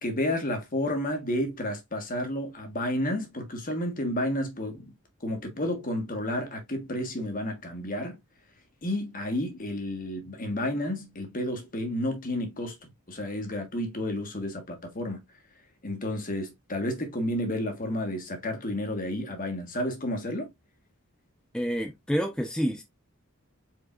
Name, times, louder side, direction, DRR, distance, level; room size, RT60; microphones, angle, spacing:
voice 1, 0.0-4.9 5.2-8.2 8.8-12.7 13.1-15.2 15.8-20.5, left 1 dB, 40° left, 1.5 m, -31 dB
voice 2, 21.5-22.8, equal, 5° left, 0.6 m, -28 dB
4.7 x 4.6 x 2.5 m
head